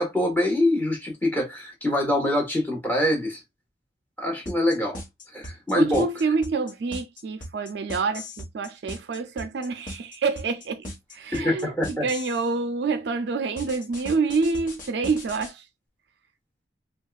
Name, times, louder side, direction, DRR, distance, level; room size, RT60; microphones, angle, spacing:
voice 1, 0.0-3.4 4.2-5.0 5.3-6.1 11.3-12.0, left 1 dB, 10° left, 1.2 m, -24 dB
sound 1, 4.5-12.5 13.6-15.5, left 1 dB, 45° left, 1.3 m, -38 dB
voice 2, 5.7-15.6, right 4 dB, 60° right, 0.4 m, -27 dB
4.4 x 2.3 x 2.3 m
head